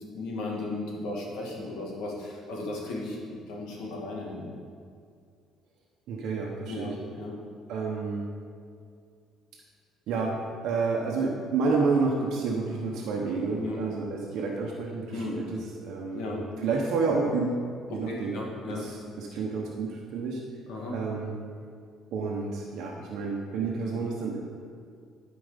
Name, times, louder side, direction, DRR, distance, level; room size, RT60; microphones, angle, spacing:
voice 1, 0.1-4.5 6.7-6.9 7.2-7.3 13.6-13.8 15.1-15.3 16.1-16.4 18.1-18.8 20.7-21.0, left 2 dB, 80° left, -2 dB, 2.3 m, -35 dB
voice 2, 6.1-7.0 7.7-8.3 10.1-17.6 17.9-18.4 18.7-20.4 20.9-21.4 22.1-24.4, right 4 dB, 60° right, -1 dB, 1.1 m, -30 dB
12.0 x 5.3 x 5.2 m, 2.2 s
cardioid pair, 175°, 0 cm